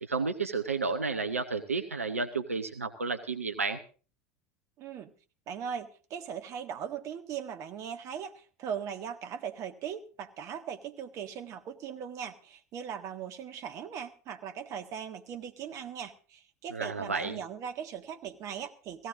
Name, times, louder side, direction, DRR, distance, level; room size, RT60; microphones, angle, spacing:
voice 1, 0.0-3.8 16.7-17.4, right 4 dB, 85° right, 8 dB, 0.9 m, -32 dB
voice 2, 4.8-5.1 5.5-19.1, right 8 dB, 45° right, 7 dB, 1.5 m, -39 dB
17.0 x 15.5 x 3.7 m, 0.37 s
figure-of-eight pair, 75°, 7 cm